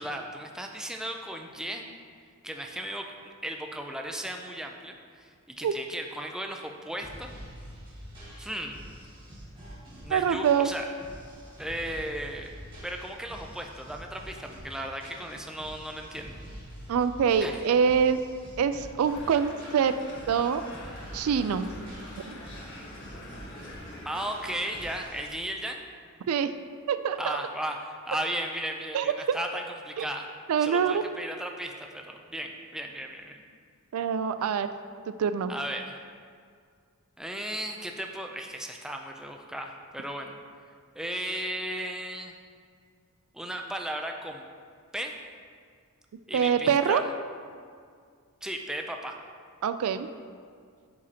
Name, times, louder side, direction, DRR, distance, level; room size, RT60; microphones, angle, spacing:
voice 1, 0.0-1.8 2.4-7.3 8.4-8.7 10.0-10.9 11.6-12.5 12.8-16.4 17.4-17.6 24.1-25.8 27.2-30.3 30.6-33.4 35.5-36.0 37.2-40.4 41.0-42.3 43.3-44.4 44.9-45.1 46.3-47.1 48.4-49.2, right 1 dB, 5° right, 2 dB, 0.4 m, -35 dB
sound 1, 7.0-25.3, equal, 20° right, 1.9 m, -46 dB
voice 2, 10.1-10.7 16.9-18.2 18.6-19.9 20.3-20.6 21.1-21.7 22.2-22.3 26.3-26.5 26.9-27.4 28.9-29.4 30.0-30.1 30.5-31.0 33.9-34.7 35.1-35.5 46.3-47.0 49.6-50.1, right 7 dB, 75° right, 11 dB, 0.3 m, -25 dB
sound 2, 19.1-25.1, left 1 dB, 55° left, 1.3 m, -45 dB
11.0 x 5.0 x 2.8 m, 2.1 s
head